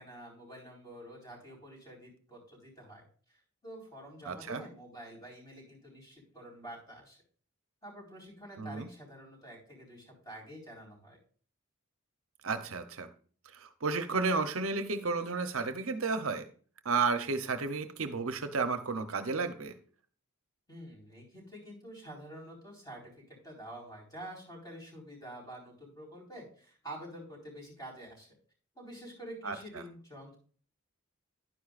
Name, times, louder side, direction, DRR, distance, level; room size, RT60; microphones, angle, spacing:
voice 1, 0.0-7.2 7.8-11.2 20.7-28.3 28.7-30.4, right 1 dB, 15° left, -2 dB, 4.5 m, -48 dB
voice 2, 4.3-4.6 8.6-8.9 12.4-13.1 13.5-16.5 16.8-19.7 29.4-29.6, right 4 dB, 65° right, 9 dB, 0.8 m, -32 dB
11.0 x 9.9 x 2.5 m, 0.43 s
head